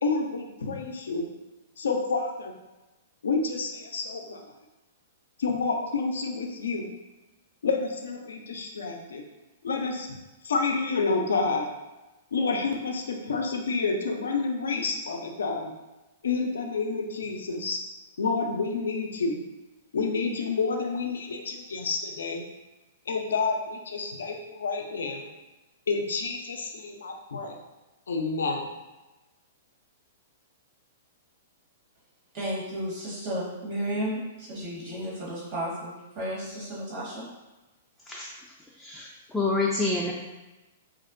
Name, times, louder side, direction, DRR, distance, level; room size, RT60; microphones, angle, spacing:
voice 1, 0.0-1.3 1.8-2.5 3.2-4.5 5.4-6.9 7.6-9.2 9.6-10.1 10.4-11.7 12.3-15.7 16.2-17.8 18.2-19.4 19.9-22.4 23.1-25.3 25.9-27.6 28.1-28.7, left 4 dB, 80° left, 3 dB, 0.4 m, -29 dB
voice 2, 32.3-37.3, equal, 55° right, -6 dB, 1.0 m, -33 dB
voice 3, 38.8-40.1, left 3 dB, 5° left, -5 dB, 0.3 m, -28 dB
2.4 x 2.0 x 2.5 m, 1.1 s
hypercardioid pair, 120°, 0 cm